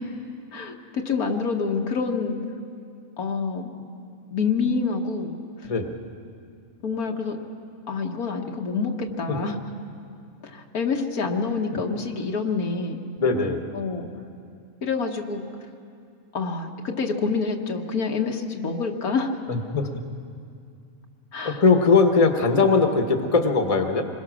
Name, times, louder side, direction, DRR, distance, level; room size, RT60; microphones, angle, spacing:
voice 1, 0.5-2.4 3.2-3.7 4.3-5.3 6.8-7.4 7.9-9.6 10.4-13.0 13.7-14.1 14.8-15.4 16.3-19.4 21.3-21.6, left 4 dB, 80° left, 2 dB, 1.8 m, -27 dB
voice 2, 13.2-13.6 19.5-20.0 21.4-24.1, left 4 dB, 25° left, 5 dB, 1.2 m, -20 dB
26.5 x 21.5 x 6.2 m, 2.4 s
omnidirectional pair, 1.5 m